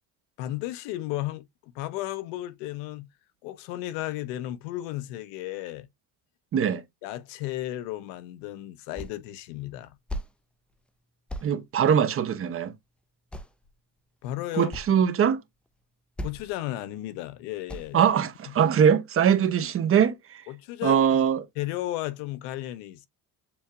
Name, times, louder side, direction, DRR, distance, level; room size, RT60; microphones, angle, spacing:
voice 1, 0.4-3.1 3.4-5.9 7.0-10.0 14.2-14.7 16.2-18.0 18.5-18.6 20.5-21.2 21.6-23.1, left 15 dB, 80° left, 0.8 m, -34 dB
sound 1, 9.0-9.3 9.6-10.3 10.7-10.9 11.3-11.5 12.7-12.8 13.3-13.7 14.2-14.3 14.5-14.9 15.7-15.8 16.2-16.5 16.9-17.1 17.7-18.0, equal, 5° left, 0.3 m, -37 dB
voice 2, 11.4-12.7 14.6-15.4 17.9-20.1 20.8-21.4, right 8 dB, 35° right, 0.6 m, -22 dB
7.0 x 2.7 x 2.2 m
supercardioid pair, 105°, 40 cm